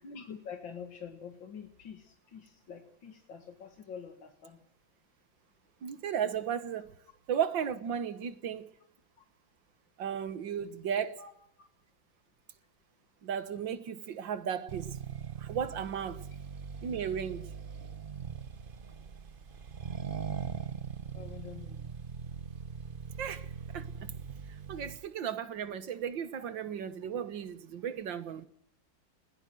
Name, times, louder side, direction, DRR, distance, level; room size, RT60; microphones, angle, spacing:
voice 1, 0.0-4.6 9.2-9.3 11.2-11.3 21.1-22.1, left 7 dB, 90° left, 2.5 m, -46 dB
voice 2, 5.8-6.9 7.3-8.7 10.0-11.2 13.2-15.0 15.4-16.3 16.8-17.4 23.2-24.1 24.5-28.5, right 8 dB, 80° right, 2.0 m, -35 dB
Accelerating revving vroom, 14.7-25.1, right 6 dB, 40° right, 0.8 m, -41 dB
21.0 x 16.5 x 7.8 m
omnidirectional pair, 2.0 m